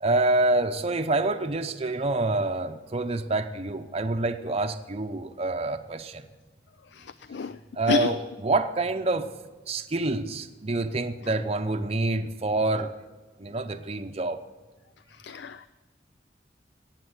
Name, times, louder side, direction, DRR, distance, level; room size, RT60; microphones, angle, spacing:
voice 1, 0.0-6.3 7.7-9.3 9.7-12.9 13.4-14.4, right 2 dB, 35° right, 7 dB, 0.7 m, -27 dB
voice 2, 15.2-15.7, left 5 dB, 70° left, 13 dB, 0.4 m, -28 dB
17.0 x 7.5 x 9.5 m, 1.3 s
head